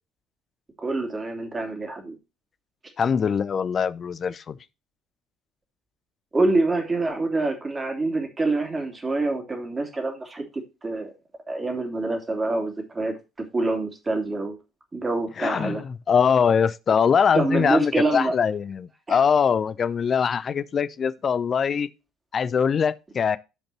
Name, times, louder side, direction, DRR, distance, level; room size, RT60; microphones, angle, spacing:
voice 1, 0.8-2.2 6.3-10.4 10.8-11.1 11.5-13.1 13.5-14.6 14.9-15.8 17.3-18.3 19.1-19.2, right 2 dB, 20° right, 2.9 m, -26 dB
voice 2, 3.0-4.6 15.4-21.9 22.3-23.4, left 7 dB, 35° left, 0.6 m, -22 dB
14.5 x 5.2 x 2.9 m
figure-of-eight pair, 55°, 0 cm